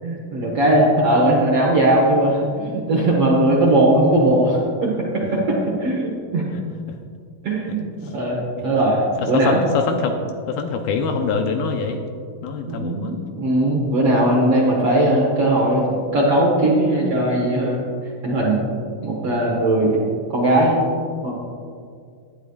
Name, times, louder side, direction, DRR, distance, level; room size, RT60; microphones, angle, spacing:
voice 1, 0.0-6.4 7.4-9.0 9.3-9.5 12.7-17.8 18.2-18.7 19.0-20.0 20.3-20.8 21.2-21.3, right 1 dB, 60° right, -3 dB, 1.6 m, -19 dB
voice 2, 9.2-10.2 10.5-12.0 12.4-13.1, left 5 dB, 80° left, 4 dB, 2.3 m, -24 dB
17.0 x 11.0 x 2.4 m, 2.3 s
omnidirectional pair, 4.6 m